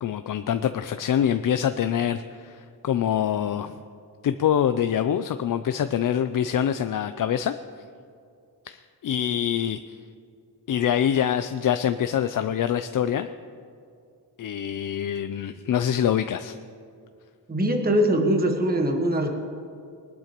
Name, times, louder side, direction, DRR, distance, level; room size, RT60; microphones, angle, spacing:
voice 1, 0.0-3.8 4.2-7.5 8.7-9.8 10.7-13.3 14.4-16.6, left 9 dB, 50° left, 10 dB, 0.4 m, -25 dB
voice 2, 17.5-19.3, right 1 dB, 20° right, 3 dB, 1.3 m, -22 dB
21.0 x 12.0 x 3.0 m, 2.4 s
wide cardioid pair, 130°, 42 cm